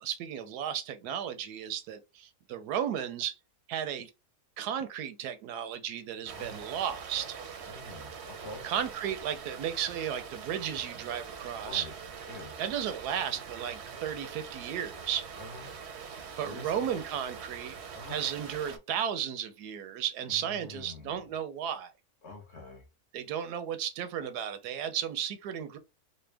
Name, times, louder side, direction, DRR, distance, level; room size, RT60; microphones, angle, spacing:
voice 1, 0.0-3.3 3.7-4.1 4.6-7.4 8.6-11.9 12.6-15.3 16.4-17.7 18.1-21.9 23.1-25.8, right 9 dB, 85° right, 1.2 m, -34 dB
sound 1, 6.3-18.8, right 6 dB, 55° right, 0.8 m, -44 dB
voice 2, 7.7-8.7 11.6-11.9 12.3-12.5 15.4-15.7 16.4-17.0 17.9-18.1 20.3-21.3 22.2-22.8, left 2 dB, 50° left, 1.3 m, -46 dB
4.2 x 2.1 x 3.3 m
omnidirectional pair, 1.7 m